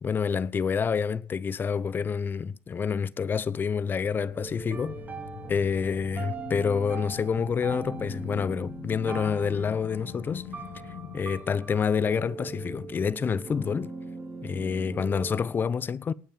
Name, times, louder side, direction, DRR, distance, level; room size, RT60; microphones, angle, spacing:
voice 1, 0.0-5.0 5.5-10.5 11.1-13.9 14.4-16.1, left 6 dB, 35° left, 0.9 m, -28 dB
sound 1, 4.0-15.4, right 4 dB, 30° right, 3.8 m, -40 dB
sound 2, 4.5-11.2, left 13 dB, 75° left, 1.4 m, -43 dB
18.5 x 9.1 x 5.1 m
supercardioid pair, 85°, 6 cm